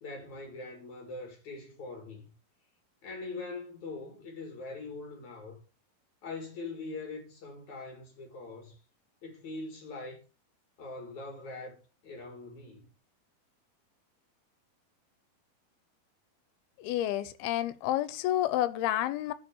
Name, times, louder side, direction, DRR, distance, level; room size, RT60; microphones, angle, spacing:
voice 1, 0.0-2.3 3.0-5.6 6.2-8.8 9.2-10.2 10.8-11.8 12.0-12.9, left 3 dB, 55° left, 3.4 m, -42 dB
voice 2, 16.8-19.3, left 13 dB, 90° left, 2.7 m, -30 dB
9.7 x 4.9 x 7.0 m
omnidirectional pair, 4.4 m